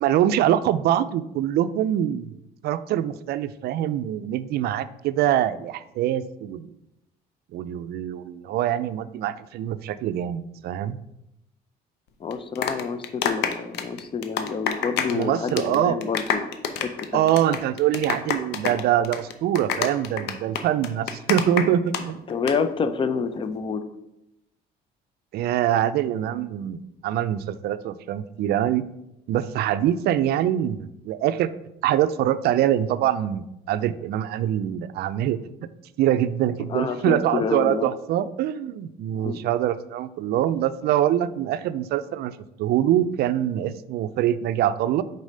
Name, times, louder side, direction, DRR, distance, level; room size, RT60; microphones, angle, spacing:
voice 1, 0.0-2.3 2.6-6.7 7.5-11.0 15.1-16.0 17.1-22.2 25.3-28.8 29.3-31.5 31.8-35.4 36.0-45.0, right 11 dB, 70° right, 13 dB, 0.4 m, -24 dB
voice 2, 12.2-17.2 22.3-23.9 36.7-37.9 39.2-39.4, left 5 dB, 30° left, 10 dB, 0.5 m, -28 dB
sound 1, 12.3-15.2 15.5-15.8 16.0-22.0 22.3-22.5, left 7 dB, 80° left, 0.7 m, -27 dB
4.9 x 4.0 x 5.4 m, 0.87 s
cardioid pair, 110°, 17 cm